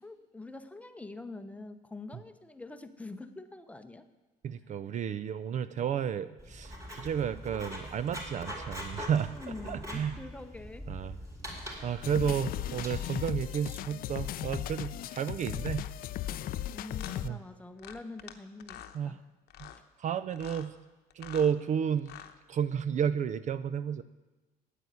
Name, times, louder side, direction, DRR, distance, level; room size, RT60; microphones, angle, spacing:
voice 1, 0.0-4.1 9.2-10.9 12.2-12.4 16.7-19.2, left 2 dB, 10° left, 9 dB, 0.7 m, -45 dB
voice 2, 4.4-10.2 10.9-11.2 11.8-15.8 17.2-17.4 18.9-19.2 19.6-19.7 20.0-20.8 21.1-22.1 22.5-24.0, right 8 dB, 45° right, 14 dB, 0.4 m, -32 dB
Writing, 6.4-12.9, equal, 20° right, 3.9 m, -42 dB
sound 1, 12.0-17.3, left 12 dB, 60° left, 0.4 m, -36 dB
sound 2, 16.2-16.4 17.0-17.2 17.8-18.3 18.6-19.0 19.5-19.8 20.3-20.7 21.1-21.5 22.0-22.3, left 11 dB, 75° left, 0.9 m, -47 dB
9.0 x 8.5 x 9.4 m, 1.2 s
cardioid pair, 110°, 17 cm